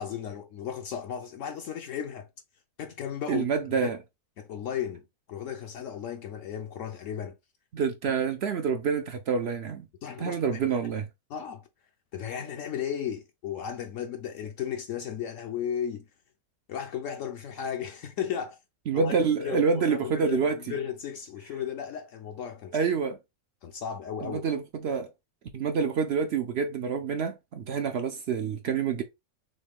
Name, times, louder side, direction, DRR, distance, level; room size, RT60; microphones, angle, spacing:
voice 1, 0.0-2.3 2.8-3.5 3.8-3.9 4.4-7.4 10.0-10.6 11.3-11.7 12.1-16.1 16.7-18.6 18.9-22.8 23.6-24.5, left 8 dB, 65° left, 0.9 m, -35 dB
voice 2, 3.3-4.0 7.7-9.9 10.2-11.0 18.9-20.8 22.7-23.2 24.2-25.1 25.5-29.0, right 6 dB, 65° right, 0.7 m, -27 dB
6.3 x 2.2 x 3.3 m
omnidirectional pair, 1.6 m